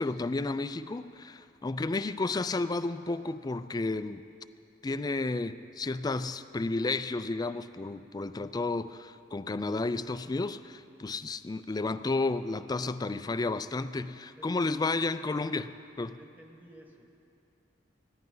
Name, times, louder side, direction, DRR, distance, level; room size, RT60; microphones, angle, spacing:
voice 1, 0.0-4.2 4.8-15.7 16.0-16.2, left 3 dB, 20° left, 13 dB, 0.4 m, -32 dB
voice 2, 14.4-14.8 16.0-17.0, right 1 dB, 10° right, 1 dB, 1.4 m, -54 dB
20.0 x 15.0 x 3.9 m, 2.6 s
head